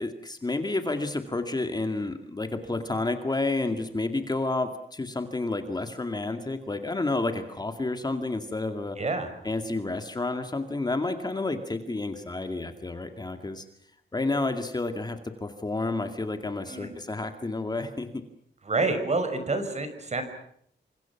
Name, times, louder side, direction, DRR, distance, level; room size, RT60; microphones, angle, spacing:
voice 1, 0.0-9.0 9.4-13.7 14.1-18.2, left 2 dB, 20° left, 7 dB, 2.2 m, -30 dB
voice 2, 9.0-9.3 16.7-17.0 18.6-20.2, right 3 dB, 35° right, 8 dB, 5.7 m, -28 dB
29.0 x 26.0 x 5.9 m, 0.68 s
wide cardioid pair, 155°, 19 cm